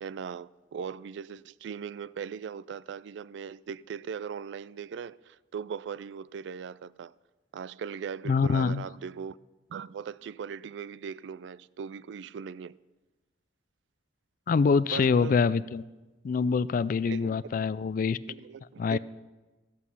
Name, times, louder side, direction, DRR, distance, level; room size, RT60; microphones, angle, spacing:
voice 1, 0.0-7.1 7.5-9.4 9.7-12.7 14.9-15.3 17.0-17.3 18.3-19.0, right 7 dB, 80° right, 0.3 m, -39 dB
voice 2, 8.3-8.8 14.5-15.8 16.2-18.2 18.8-19.0, left 5 dB, 50° left, 0.3 m, -25 dB
14.0 x 8.3 x 5.6 m
head